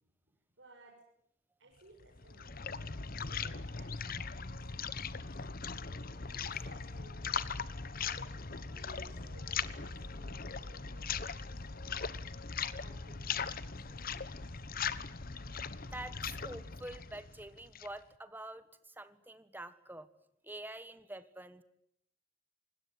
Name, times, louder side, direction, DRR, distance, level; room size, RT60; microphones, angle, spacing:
voice 1, 0.6-1.0 1.6-2.7 3.3-5.3 6.1-7.8 8.6-12.0 12.8-14.6, right 2 dB, 55° right, -2 dB, 6.7 m, -61 dB
sound 1, 2.0-18.0, left 5 dB, 45° left, 1.1 m, -40 dB
sound 2, 5.6-10.6, left 1 dB, 75° left, 3.3 m, -63 dB
voice 2, 15.8-20.1 20.4-21.6, right 1 dB, 10° right, 12 dB, 1.4 m, -47 dB
26.0 x 20.5 x 9.6 m, 0.75 s
head